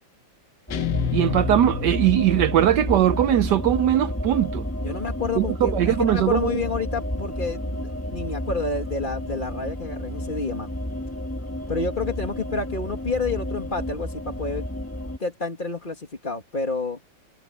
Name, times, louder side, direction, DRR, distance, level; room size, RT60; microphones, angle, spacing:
Guitar, 0.7-3.9, left 10 dB, 65° left, 1.6 m, -31 dB
sound 1, 0.7-15.2, left 1 dB, 5° left, 2.1 m, -31 dB
voice 1, 1.1-4.7 5.4-6.5, right 12 dB, 70° right, 1.2 m, -20 dB
voice 2, 4.8-10.8 11.7-14.7 15.2-17.0, left 3 dB, 25° left, 2.1 m, -29 dB
omnidirectional pair, 2.1 m